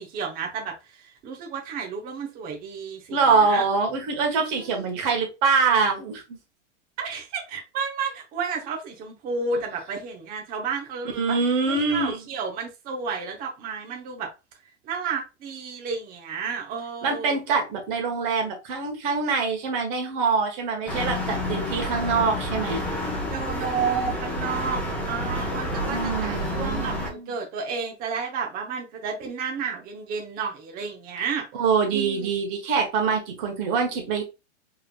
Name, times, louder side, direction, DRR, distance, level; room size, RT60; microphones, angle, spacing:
voice 1, 0.0-3.6 4.4-4.9 7.0-11.4 11.7-14.3 14.8-17.4 23.3-31.5 31.9-32.3, right 5 dB, 25° right, 0.8 m, -32 dB
voice 2, 3.1-6.4 11.2-12.2 17.0-22.8 25.9-27.3 31.5-34.2, right 4 dB, 45° right, 1.6 m, -24 dB
sound 1, 20.9-27.1, left 1 dB, 5° left, 1.0 m, -29 dB
4.6 x 3.3 x 2.3 m
hypercardioid pair, 135°, 36 cm